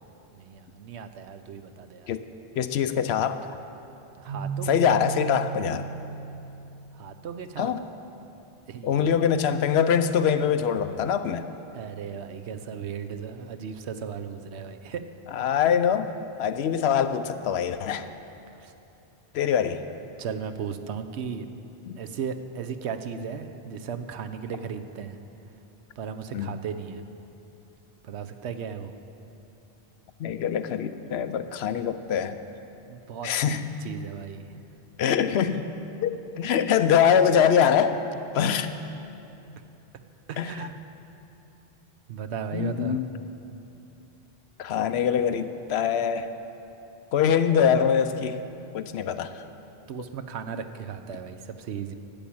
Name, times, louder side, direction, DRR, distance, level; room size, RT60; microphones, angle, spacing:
voice 1, 0.3-2.1 4.2-4.9 7.0-7.7 8.7-9.1 11.7-15.0 18.5-18.7 20.2-21.5 22.0-25.2 26.0-27.0 28.0-28.9 32.9-34.4 40.3-40.7 42.1-43.0 49.9-52.0, right 7 dB, 90° right, 8 dB, 1.0 m, -36 dB
voice 2, 2.6-3.5 4.7-5.9 7.6-7.8 8.8-11.5 15.3-16.1 16.4-18.1 19.3-19.8 21.9-22.0 26.3-26.5 30.2-32.4 33.2-33.7 35.0-35.7 36.0-38.0 38.3-38.7 40.4-40.6 42.5-43.1 44.6-46.3 47.1-48.4 48.7-49.4, left 8 dB, 75° left, 11 dB, 0.8 m, -24 dB
Keyboard (musical), 4.3-7.2, right 8 dB, 70° right, 1.8 m, -35 dB
12.0 x 7.3 x 8.6 m, 2.9 s
omnidirectional pair, 1.1 m